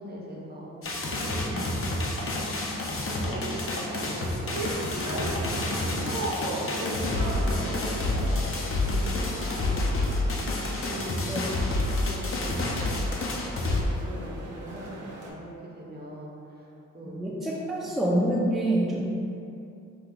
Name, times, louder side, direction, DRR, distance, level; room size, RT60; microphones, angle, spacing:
voice 1, 0.0-11.3 11.8-13.1 13.6-17.3 17.6-17.8, right 1 dB, 30° right, -4 dB, 0.8 m, -42 dB
sound 1, 0.8-13.8, left 2 dB, 45° left, 0.6 m, -29 dB
sound 2, 3.2-15.3, right 1 dB, 65° right, 0.9 m, -38 dB
voice 2, 17.2-19.0, right 1 dB, ahead, -6 dB, 0.5 m, -26 dB
4.5 x 2.4 x 3.7 m, 2.7 s
cardioid pair, 80°, 31 cm